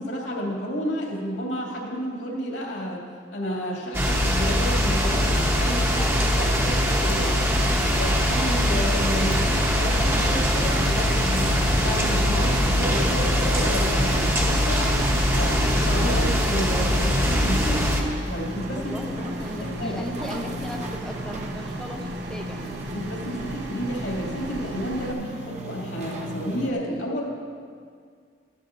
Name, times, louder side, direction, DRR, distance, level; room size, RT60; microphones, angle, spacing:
voice 1, 0.0-3.0 3.3-6.2 6.5-7.5 7.9-15.0 15.3-17.9 18.3-18.9 19.6-20.1 22.9-27.3, equal, 70° left, -3 dB, 2.6 m, -31 dB
sound 1, 3.9-18.0, equal, 15° right, 1.1 m, -22 dB
voice 2, 6.0-6.4 18.7-22.7, equal, 5° left, 0 dB, 0.7 m, -36 dB
sound 2, 7.5-25.1, right 1 dB, 60° right, 1.1 m, -38 dB
sound 3, 9.1-26.7, right 1 dB, 40° right, 0.8 m, -35 dB
15.5 x 12.5 x 2.6 m, 2.1 s
head